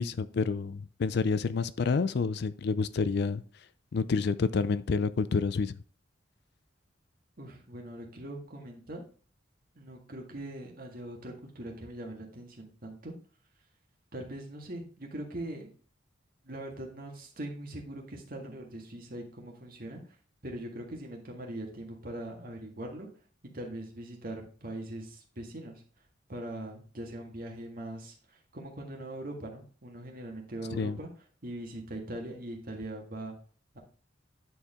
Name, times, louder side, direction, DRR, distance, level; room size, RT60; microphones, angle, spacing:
voice 1, 0.0-3.4 3.9-5.7 30.7-31.0, left 4 dB, 60° left, 0.4 m, -28 dB
voice 2, 7.4-9.0 9.8-13.1 14.1-15.7 16.4-20.0 20.4-23.1 23.5-25.8 26.3-31.1 31.4-33.4 33.7-33.8, right 1 dB, 50° right, 1.8 m, -41 dB
9.9 x 4.6 x 3.6 m
head